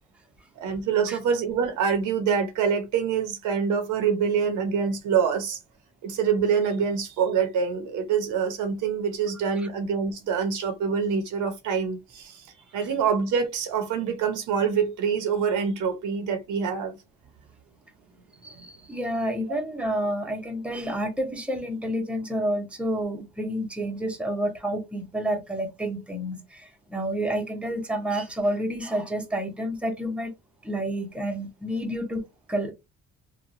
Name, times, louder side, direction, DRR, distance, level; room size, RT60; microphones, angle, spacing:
voice 1, 0.6-5.6 6.0-12.5 12.7-17.0 18.6-18.7, right 6 dB, 80° right, 0.8 m, -25 dB
voice 2, 18.4-30.3 30.6-32.2 32.5-32.7, right 1 dB, 5° right, 0.7 m, -29 dB
2.9 x 2.2 x 2.5 m
cardioid pair, 90°, 30 cm